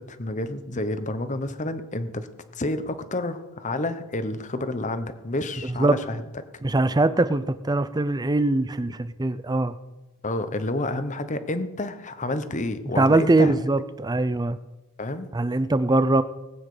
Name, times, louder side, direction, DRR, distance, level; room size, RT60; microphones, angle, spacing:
voice 1, 0.0-2.3 2.5-6.5 10.2-13.5 15.0-15.3, left 2 dB, 35° left, 10 dB, 0.9 m, -29 dB
voice 2, 6.6-9.7 13.0-14.6 15.3-16.2, right 2 dB, 20° right, 13 dB, 0.5 m, -22 dB
19.0 x 8.9 x 4.9 m, 1.1 s
head